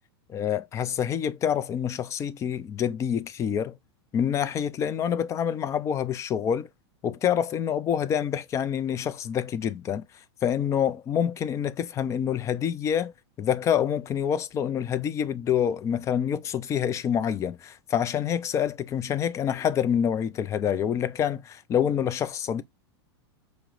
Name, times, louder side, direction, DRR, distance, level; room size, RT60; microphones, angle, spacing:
voice 1, 0.3-3.8 4.1-6.7 7.0-10.0 10.4-13.1 13.4-22.6, left 8 dB, 20° left, 0.3 m, -27 dB
4.8 x 2.0 x 3.0 m
hypercardioid pair, 125°, 14 cm